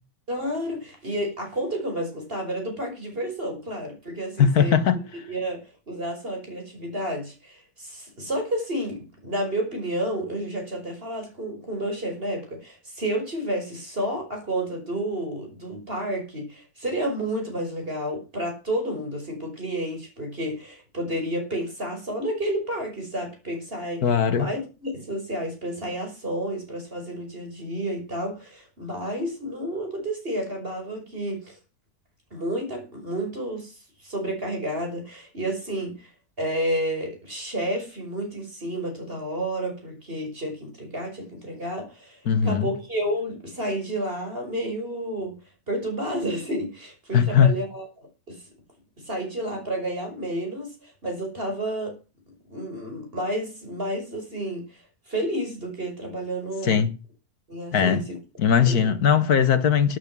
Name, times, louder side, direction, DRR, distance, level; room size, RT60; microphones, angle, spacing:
voice 1, 0.3-4.8 5.3-31.6 32.3-36.1 36.4-45.4 45.7-48.4 49.0-51.9 52.5-56.9 57.5-58.2 58.6-58.9, right 1 dB, 35° right, 5.9 m, -31 dB
voice 2, 4.4-5.0 24.0-24.5 42.3-42.7 47.1-47.5 56.6-56.9 57.7-58.0 58.4-60.0, left 7 dB, 80° left, 1.8 m, -19 dB
12.5 x 10.0 x 6.1 m
omnidirectional pair, 1.6 m